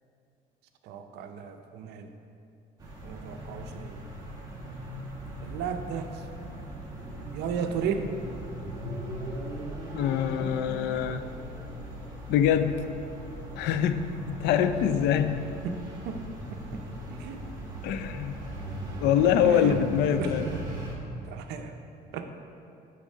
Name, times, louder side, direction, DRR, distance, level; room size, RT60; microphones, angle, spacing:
voice 1, 0.8-2.1 3.0-4.0 5.4-6.2 7.3-8.1 15.6-16.2 16.7-16.8 17.1-17.4 19.4-19.8 20.2-20.8 21.2-21.7 22.1-22.3, right 6 dB, 80° right, 6 dB, 0.7 m, -34 dB
sound 1, 2.8-21.0, right 1 dB, 25° right, 1.8 m, -39 dB
voice 2, 9.9-11.2 12.3-12.8 13.6-15.5 17.8-18.4 19.0-20.5, left 9 dB, 85° left, 10 dB, 0.5 m, -24 dB
9.7 x 3.6 x 5.4 m, 2.6 s
cardioid pair, 110°, 17 cm